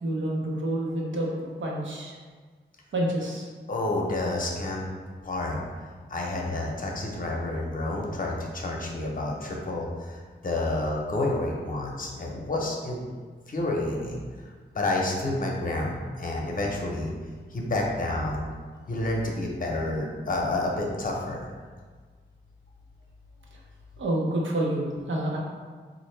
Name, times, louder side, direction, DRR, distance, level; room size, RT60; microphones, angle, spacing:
voice 1, 0.0-2.2 2.9-3.5 23.5-23.6 24.0-25.4, right 1 dB, 85° right, -2 dB, 0.7 m, -28 dB
voice 2, 3.7-4.8 5.2-5.6 6.1-13.0 13.5-14.2 14.7-17.1 17.5-18.5 18.9-21.5, left 2 dB, 45° left, -1 dB, 0.6 m, -29 dB
4.1 x 2.5 x 3.2 m, 1.5 s
wide cardioid pair, 140°, 19 cm